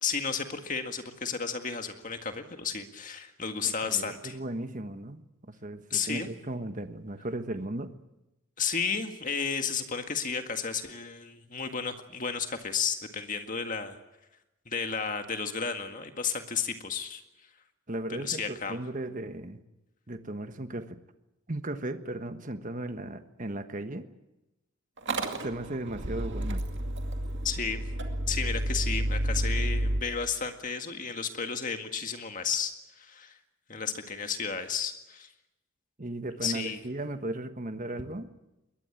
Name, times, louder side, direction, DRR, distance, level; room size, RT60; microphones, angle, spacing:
voice 1, 0.0-4.4 5.9-6.3 8.6-14.0 14.7-17.2 18.1-18.8 27.4-27.8 28.3-33.4 33.7-35.3 36.4-36.8, left 6 dB, 35° left, 6 dB, 1.9 m, -33 dB
voice 2, 3.6-7.9 17.9-19.6 20.1-21.0 21.5-24.0 25.4-26.6 36.0-38.3, right 1 dB, 35° right, 9 dB, 1.3 m, -36 dB
Motor vehicle (road) / Engine starting, 25.0-30.0, right 1 dB, 55° right, 2.3 m, -30 dB
22.0 x 19.5 x 8.9 m, 0.96 s
head